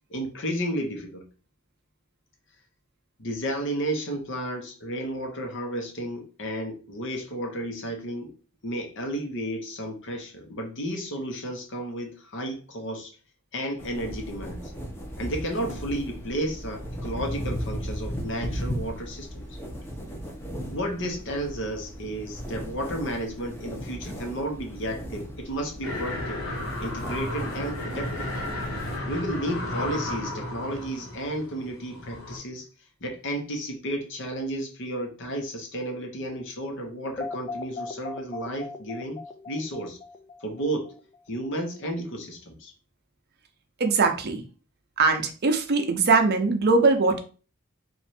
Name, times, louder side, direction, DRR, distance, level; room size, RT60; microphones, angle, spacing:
voice 1, 0.1-1.2 3.2-8.3 8.6-13.2 13.5-14.7 15.2-19.5 20.7-26.4 26.8-28.3 29.1-32.6 33.0-39.2 39.5-40.0 40.4-40.9 41.3-42.7, right 1 dB, 60° left, 3 dB, 0.9 m, -32 dB
sound 1, 13.8-29.0, equal, 10° left, 0.7 m, -36 dB
sound 2, 25.8-32.4, left 1 dB, 90° left, 1.3 m, -33 dB
sound 3, 37.2-41.2, left 3 dB, 25° left, 0.3 m, -38 dB
voice 2, 43.8-44.4 45.0-47.2, right 3 dB, 50° right, 6 dB, 0.6 m, -21 dB
3.1 x 2.5 x 4.2 m, 0.37 s
head